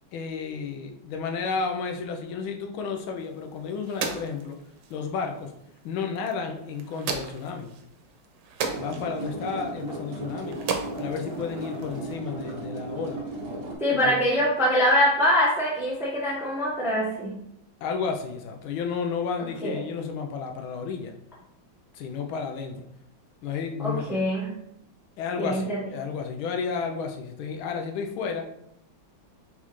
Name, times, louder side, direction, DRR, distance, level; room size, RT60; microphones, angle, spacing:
voice 1, 0.1-4.6 4.9-5.5 5.8-7.7 8.8-10.6 11.0-13.2 14.0-14.2 17.8-21.1 21.9-22.9 23.4-24.2 25.2-28.5, left 5 dB, 80° left, 4 dB, 1.4 m, -32 dB
sound 1, 3.2-12.2, right 5 dB, 80° right, 1.4 m, -37 dB
sound 2, 8.6-13.7, right 1 dB, 55° right, 1.1 m, -35 dB
voice 2, 13.8-17.3 19.6-19.8 23.8-24.5 25.4-25.9, equal, 5° right, -4 dB, 0.4 m, -24 dB
4.1 x 4.1 x 3.0 m, 0.76 s
omnidirectional pair, 2.2 m